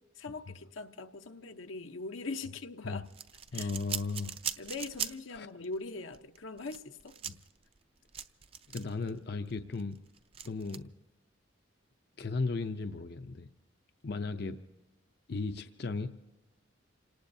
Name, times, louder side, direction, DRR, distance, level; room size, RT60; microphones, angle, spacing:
voice 1, 0.2-3.0 3.5-3.7 4.6-7.1, left 3 dB, 85° left, 7 dB, 0.9 m, -41 dB
sound 1, 3.1-5.4 5.6-5.8 6.1-9.1 9.5-10.8, right 8 dB, 30° right, 0.5 m, -40 dB
voice 2, 3.5-4.4 5.3-5.5 7.2-7.4 8.7-10.0 10.4-10.9 12.2-13.5 14.0-14.6 15.3-16.1, left 3 dB, 55° left, 8 dB, 0.6 m, -36 dB
28.0 x 18.5 x 2.7 m, 1.1 s
head